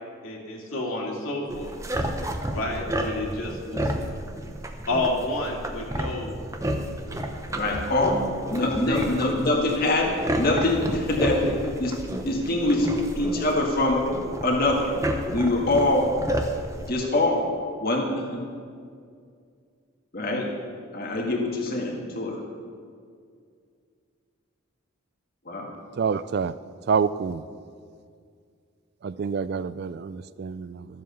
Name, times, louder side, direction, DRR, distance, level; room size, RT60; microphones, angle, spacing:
voice 1, 0.2-1.7 2.5-3.9 4.9-6.3 8.5-9.3, left 2 dB, 80° left, -1 dB, 2.5 m, -30 dB
sound 1, 1.5-16.9, right 1 dB, 15° right, 0.8 m, -31 dB
voice 2, 7.6-11.9 12.2-12.9 13.2-14.1 14.4-15.0 15.3-16.1 16.9-17.5 17.8-18.4 20.1-20.5 20.9-22.4 25.5-25.7, left 2 dB, 45° left, 0 dB, 1.9 m, -24 dB
voice 3, 26.0-26.5 26.9-27.4 29.0-30.9, right 6 dB, 50° right, 16 dB, 0.3 m, -27 dB
13.0 x 7.6 x 6.9 m, 2.2 s
head